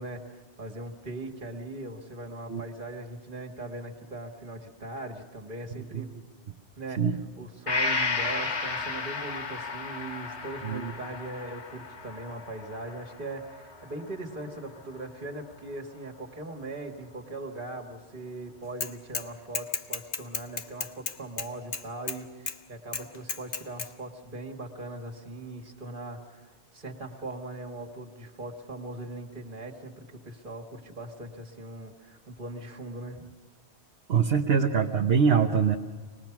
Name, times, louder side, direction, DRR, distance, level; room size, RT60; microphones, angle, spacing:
voice 1, 0.0-6.1 6.8-7.0 7.4-33.3, right 2 dB, 50° right, 2 dB, 2.1 m, -40 dB
Gong, 7.7-15.3 15.7-15.8, left 4 dB, 90° left, 1.7 m, -34 dB
Bicycle / Mechanisms, 18.8-19.3 19.5-22.2 22.5-22.6 22.9-23.9, left 5 dB, 60° left, 1.2 m, -33 dB
voice 2, 34.1-35.8, right 6 dB, 65° right, 2 dB, 1.2 m, -23 dB
25.0 x 20.0 x 6.0 m, 1.5 s
omnidirectional pair, 1.1 m